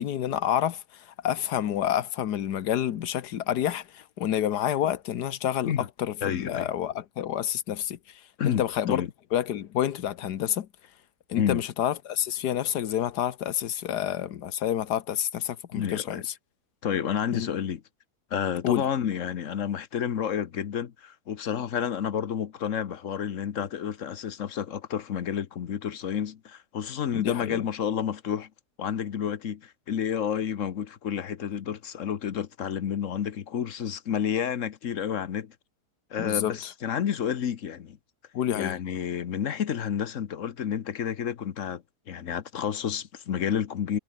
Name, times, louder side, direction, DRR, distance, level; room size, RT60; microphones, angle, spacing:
voice 1, 0.0-5.7 6.0-8.0 8.4-9.0 9.3-10.7 11.3-16.3 17.3-17.5 18.6-18.8 27.1-27.6 36.2-36.7 38.3-38.8, left 10 dB, 80° left, 1.6 m, -28 dB
voice 2, 6.2-6.7 8.4-9.1 11.3-11.6 15.7-16.2 16.8-17.8 18.3-28.5 28.8-35.5 36.1-38.0 38.5-44.0, left 8 dB, 55° left, 1.3 m, -30 dB
omnidirectional pair, 1.7 m